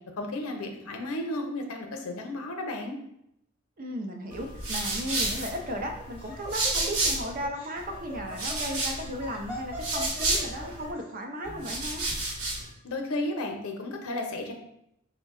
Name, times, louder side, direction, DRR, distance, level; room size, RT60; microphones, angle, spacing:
voice 1, 0.2-3.0 12.8-14.5, left 2 dB, 75° left, 3 dB, 0.6 m, -33 dB
voice 2, 3.8-12.0, equal, 40° right, 3 dB, 0.5 m, -35 dB
sound 1, 4.3-7.4 7.8-10.9 11.4-12.7, right 2 dB, 80° right, 1.0 m, -31 dB
Laughter, 5.8-11.0, equal, 10° right, 0.9 m, -41 dB
4.6 x 2.1 x 3.6 m, 0.77 s
head